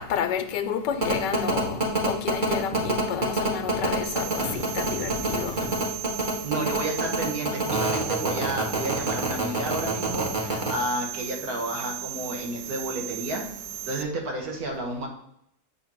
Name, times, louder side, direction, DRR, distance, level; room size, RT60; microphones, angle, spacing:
voice 1, 0.0-1.8 2.1-5.6, left 8 dB, 80° left, 1.2 m, -30 dB
sound 1, 1.0-10.7, right 3 dB, 30° right, 1.2 m, -25 dB
sound 2, 4.0-14.0, right 12 dB, 85° right, 1.3 m, -37 dB
voice 2, 6.4-13.5 13.9-15.1, right 2 dB, 60° right, 1.6 m, -31 dB
8.0 x 2.8 x 5.9 m
omnidirectional pair, 1.9 m